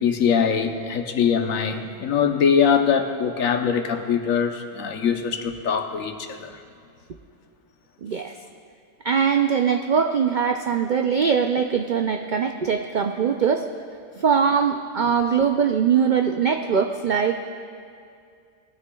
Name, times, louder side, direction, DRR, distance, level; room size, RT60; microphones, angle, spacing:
voice 1, 0.0-6.5, left 7 dB, 85° left, 6 dB, 1.2 m, -22 dB
voice 2, 8.0-8.3 9.0-13.7 14.2-17.4, right 7 dB, 75° right, 4 dB, 0.4 m, -21 dB
19.5 x 13.0 x 2.3 m, 2.3 s
omnidirectional pair, 1.4 m